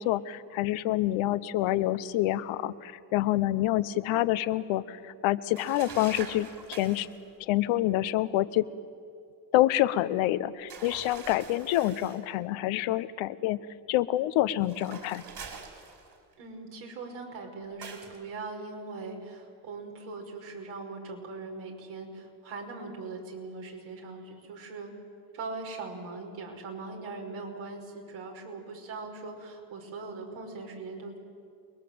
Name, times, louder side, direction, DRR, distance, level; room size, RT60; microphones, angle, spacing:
voice 1, 0.0-7.1 7.4-8.6 9.5-13.6 13.9-15.2, left 15 dB, 90° left, 14 dB, 1.0 m, -27 dB
sound 1, 5.6-7.2 10.7-12.3 14.6-16.3 17.8-18.2, right 5 dB, 55° right, 5.7 m, -44 dB
voice 2, 16.4-24.9 25.3-31.2, right 3 dB, 80° right, 1 dB, 5.8 m, -40 dB
29.5 x 21.5 x 7.8 m, 2.4 s
supercardioid pair, 80°, 46 cm